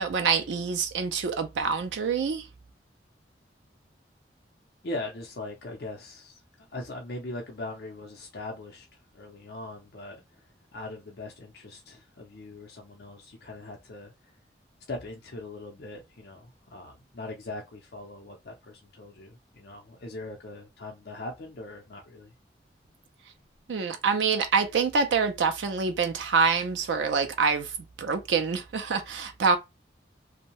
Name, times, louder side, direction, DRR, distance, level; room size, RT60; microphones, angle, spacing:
voice 1, 0.0-2.5 23.7-29.6, right 5 dB, 85° right, 0.4 m, -26 dB
voice 2, 4.8-6.4 6.7-14.3 14.9-22.3, left 2 dB, 60° left, 0.5 m, -40 dB
2.6 x 2.1 x 2.9 m
head